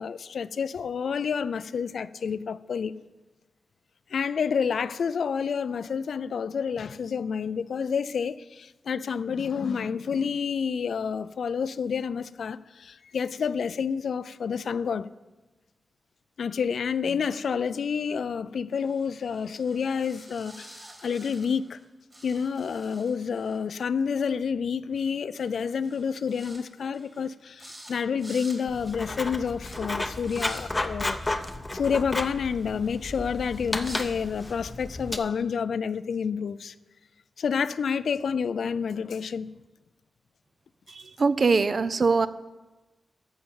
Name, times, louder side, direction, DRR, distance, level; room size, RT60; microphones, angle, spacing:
voice 1, 0.0-2.9 4.1-15.1 16.4-21.8 22.2-31.4 31.7-36.7 37.4-39.5, left 6 dB, 75° left, 0.4 m, -29 dB
sound 1, 18.7-21.8 22.1-23.6 24.9-25.1 25.3-25.6 25.8-26.6 26.9-27.3 27.6-27.9 28.2-28.6 29.0-29.2 29.6-29.8 30.2-30.6 31.8-34.1, right 1 dB, 15° right, 2.4 m, -49 dB
Writing, 28.7-35.2, left 2 dB, 20° left, 0.6 m, -33 dB
voice 2, 40.9-42.3, right 4 dB, 45° right, 0.5 m, -23 dB
14.0 x 5.8 x 7.1 m
wide cardioid pair, 155°, 0 cm